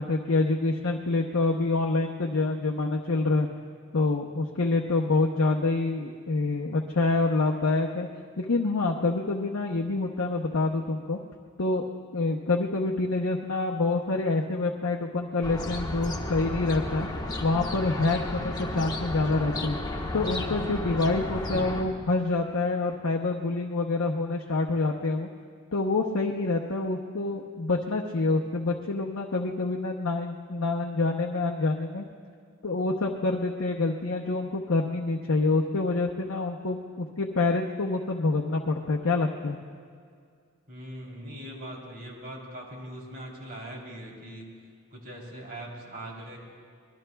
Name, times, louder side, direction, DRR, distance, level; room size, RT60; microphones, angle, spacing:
voice 1, 0.0-3.5 3.9-8.1 8.4-11.2 11.6-11.8 12.1-17.1 17.4-19.8 20.1-25.3 25.7-32.1 32.6-39.6, left 3 dB, 75° left, -1 dB, 0.8 m, -27 dB
sound 1, 15.4-21.8, left 1 dB, 20° left, 1.3 m, -33 dB
voice 2, 40.7-44.5 44.9-46.4, right 1 dB, 50° right, -2 dB, 3.3 m, -41 dB
25.5 x 21.0 x 2.3 m, 2.2 s
head